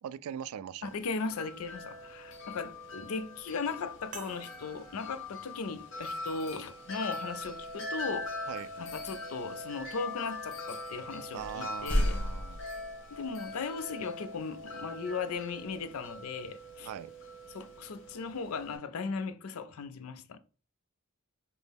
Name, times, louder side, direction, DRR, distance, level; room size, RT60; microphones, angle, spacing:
voice 1, 0.0-0.9 8.5-8.7 11.3-12.6 16.8-17.1, right 8 dB, 85° right, 0.3 m, -41 dB
voice 2, 0.8-8.5 8.8-12.2 13.1-16.9 17.5-20.4, left 4 dB, 80° left, 0.5 m, -37 dB
Wind chime, 0.9-18.8, left 2 dB, 60° left, 0.9 m, -42 dB
sound 1, 4.1-8.9 9.7-9.8 11.9-12.1, right 4 dB, 35° right, 0.6 m, -54 dB
sound 2, 7.4-7.7 8.7-9.1 9.8-9.9 10.7-10.8 11.4-13.3, equal, 5° left, 1.3 m, -33 dB
6.0 x 2.0 x 3.4 m
head